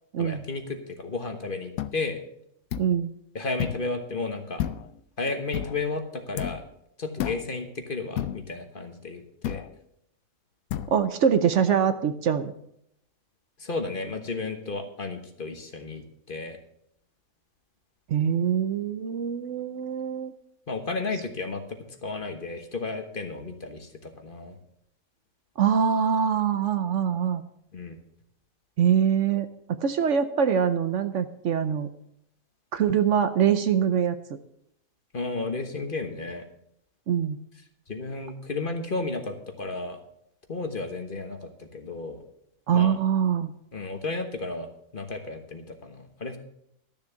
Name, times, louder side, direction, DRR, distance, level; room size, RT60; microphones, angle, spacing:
voice 1, 0.2-2.2 3.3-4.6 5.2-6.6 7.0-9.6 13.6-16.6 20.7-24.6 27.7-28.0 35.1-36.4 37.9-40.0 40.5-42.2 42.7-43.0 43.7-46.4, left 3 dB, 40° left, 6 dB, 1.3 m, -33 dB
sound 1, 1.8-1.9 2.7-2.9 3.6-3.9 4.6-5.0 5.5-5.8 6.4-6.7 7.2-7.5 8.2-8.5 9.4-9.7 10.7-10.9, left 11 dB, 80° left, 1.1 m, -31 dB
voice 2, 2.8-3.1 10.9-12.5 18.1-20.3 25.6-27.4 28.8-31.9 32.7-34.1 37.1-37.4 42.7-43.5, right 8 dB, 65° right, 10 dB, 1.0 m, -24 dB
12.5 x 7.2 x 6.8 m, 0.74 s
omnidirectional pair, 1.5 m